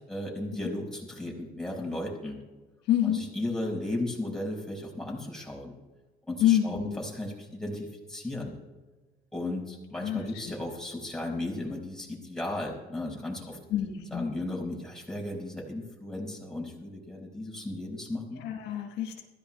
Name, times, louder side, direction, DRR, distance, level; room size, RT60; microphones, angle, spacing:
voice 1, 0.0-2.4 3.0-5.7 6.3-8.6 9.3-13.6 14.1-18.4, left 1 dB, 5° left, -2 dB, 5.0 m, -35 dB
voice 2, 2.9-3.3 6.4-7.0 10.0-10.3 13.7-14.3 18.3-19.2, left 11 dB, 90° left, 3 dB, 1.3 m, -27 dB
22.5 x 15.0 x 2.2 m, 1.2 s
cardioid pair, 110°, 17 cm